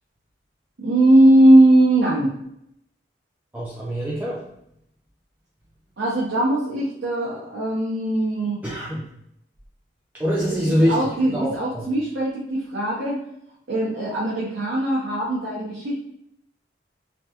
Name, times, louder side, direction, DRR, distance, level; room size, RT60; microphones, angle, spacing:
voice 1, 0.8-2.3 6.0-8.6 10.3-13.2 13.7-15.9, right 1 dB, 80° right, -6 dB, 0.7 m, -19 dB
voice 2, 3.5-4.4 8.6-9.1 10.2-11.0 11.2-11.8, equal, 10° right, -6 dB, 0.4 m, -24 dB
3.3 x 2.2 x 2.8 m, 0.76 s
head